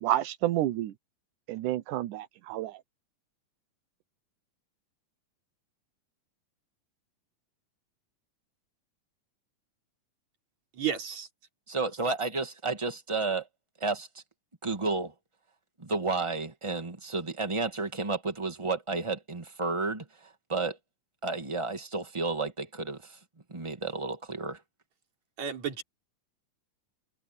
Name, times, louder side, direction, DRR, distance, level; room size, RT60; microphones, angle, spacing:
voice 1, 0.0-0.9 1.5-2.7, right 14 dB, 85° right, 2.4 m, -29 dB
voice 2, 10.8-11.3 25.4-25.8, right 8 dB, 60° right, 4.5 m, -32 dB
voice 3, 11.7-13.5 13.8-14.1 14.6-15.1 15.8-20.8 21.2-23.2 23.5-24.6, right 3 dB, 15° right, 1.2 m, -32 dB
omnidirectional pair, 3.6 m